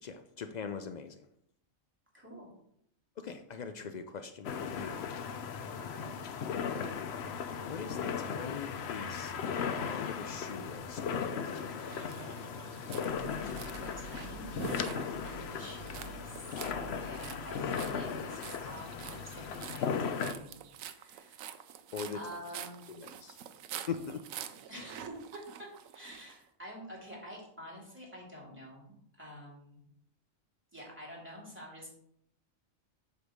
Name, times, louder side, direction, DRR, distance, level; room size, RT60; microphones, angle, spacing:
voice 1, 0.0-1.3 3.2-5.0 7.6-11.2 21.9-22.2 22.9-23.4 23.9-24.2, left 6 dB, 90° left, 8 dB, 0.3 m, -42 dB
voice 2, 2.1-2.5 5.8-6.2 13.7-21.5 22.1-23.0 24.7-29.8 30.7-31.9, equal, 10° right, -3 dB, 2.5 m, -48 dB
sound 1, 4.4-20.3, left 6 dB, 60° left, 0.8 m, -37 dB
sound 2, 11.6-26.4, right 9 dB, 85° right, 1.0 m, -47 dB
sound 3, 13.1-20.8, right 4 dB, 40° right, 1.1 m, -51 dB
8.0 x 3.4 x 6.4 m, 0.72 s
omnidirectional pair, 1.4 m